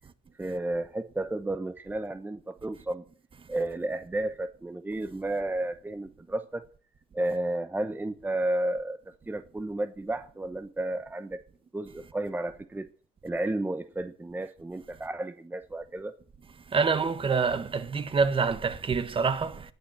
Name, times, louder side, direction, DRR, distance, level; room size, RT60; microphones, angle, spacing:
voice 1, 0.3-3.0 3.5-6.6 7.1-9.0 9.3-11.4 11.7-12.9 13.2-16.1, right 1 dB, 10° right, 1.0 m, -32 dB
voice 2, 16.7-19.6, right 5 dB, 30° right, 1.5 m, -26 dB
19.5 x 7.7 x 7.6 m
cardioid pair, 110°, 17 cm